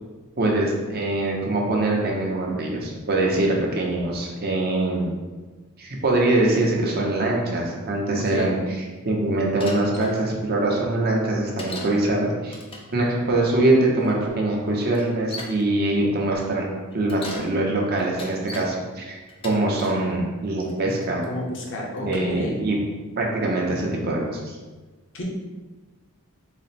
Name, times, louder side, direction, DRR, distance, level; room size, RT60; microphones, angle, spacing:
voice 1, 0.4-5.1 5.8-12.6 12.9-16.7 16.9-19.2 19.4-21.2 22.0-22.8 23.2-24.6, right 2 dB, 45° right, -1 dB, 0.7 m, -23 dB
voice 2, 8.1-8.5 21.2-22.6 25.1-25.2, left 1 dB, 60° left, -2 dB, 0.7 m, -30 dB
Bicycle, 9.6-10.2 11.6-12.0 12.5-12.9 14.0-14.1 14.9-15.6 16.9-17.5 18.0-18.7 19.3-20.0 20.6-21.0, left 2 dB, 25° left, 0.5 m, -38 dB
4.1 x 2.0 x 4.1 m, 1.3 s
head